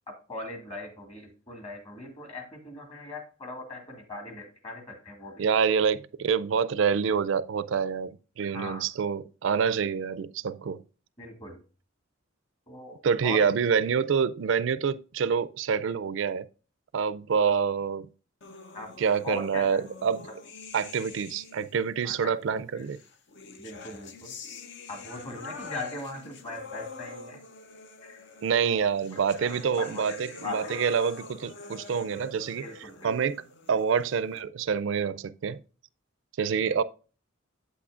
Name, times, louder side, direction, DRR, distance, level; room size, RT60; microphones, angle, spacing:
voice 1, 0.1-5.4 8.5-8.9 11.2-11.6 12.7-13.5 18.7-18.9 19.2-19.8 20.2-20.3 22.0-22.8 23.6-24.3 24.9-27.4 28.0-28.2 28.6-30.9 31.6-31.8 32.6-33.2, left 2 dB, 30° left, 1.9 m, -40 dB
voice 2, 5.4-10.8 13.0-16.4 16.9-18.1 19.0-20.2 20.7-23.0 28.4-32.6 33.0-35.6 36.4-36.8, right 6 dB, 65° right, 0.4 m, -27 dB
sound 1, 18.4-21.9 22.9-34.4, left 4 dB, 60° left, 0.7 m, -45 dB
8.4 x 8.2 x 2.4 m
head